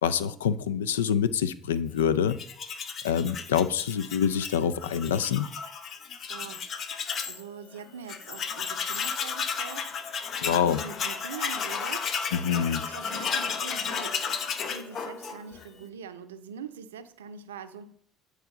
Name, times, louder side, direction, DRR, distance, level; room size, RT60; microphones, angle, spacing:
voice 1, 0.0-2.4 3.0-5.5 10.4-10.8 12.3-12.9, left 8 dB, 90° left, 14 dB, 0.4 m, -26 dB
Tools, 2.3-7.4 7.8-7.9 8.1-15.7, left 6 dB, 55° left, 0.8 m, -33 dB
voice 2, 6.3-12.2 12.8-14.2 14.6-17.9, right 7 dB, 90° right, 11 dB, 0.5 m, -43 dB
8.9 x 4.8 x 3.7 m, 0.62 s
hypercardioid pair, 65°, 0 cm